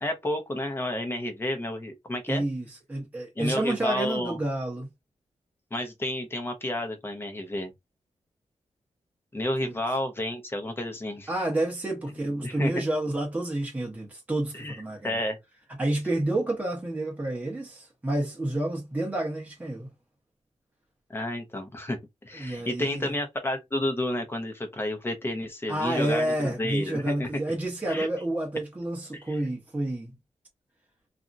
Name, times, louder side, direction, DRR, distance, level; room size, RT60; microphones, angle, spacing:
voice 1, 0.0-2.4 3.4-4.4 5.7-7.7 9.3-11.3 12.4-12.7 14.5-15.4 21.1-22.0 22.2-27.3 27.9-28.1 29.1-29.4, left 1 dB, 20° left, 0.8 m, -31 dB
voice 2, 2.3-4.9 9.6-9.8 11.3-15.2 15.8-19.9 22.3-23.1 25.7-30.1, right 1 dB, 15° right, 0.9 m, -29 dB
2.8 x 2.5 x 2.5 m
wide cardioid pair, 125°, 11 cm